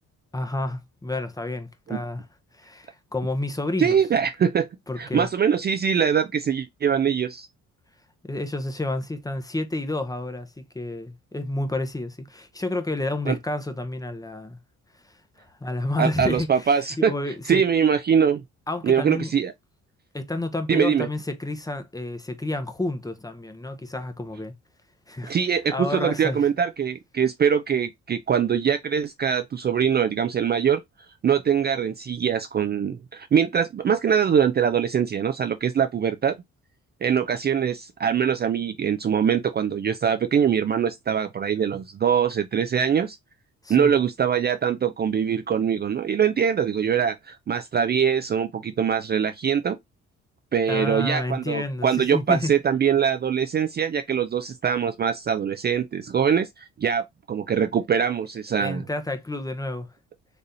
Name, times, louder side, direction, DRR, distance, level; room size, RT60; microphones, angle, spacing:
voice 1, 0.3-2.3 2.5-4.0 4.9-5.3 8.2-14.6 15.4-17.6 18.7-19.3 20.1-24.5 25.1-25.3 25.7-26.5 43.6-43.9 50.7-52.5 58.6-59.9, left 2 dB, 10° left, 0.8 m, -30 dB
voice 2, 3.8-4.7 5.0-7.5 13.3-13.4 16.0-17.1 17.5-18.4 18.8-19.5 20.7-21.1 25.3-30.8 31.2-36.4 37.0-43.2 43.7-49.8 50.5-58.8, right 7 dB, 35° right, 0.4 m, -23 dB
3.9 x 3.3 x 2.6 m
cardioid pair, 90°, 30 cm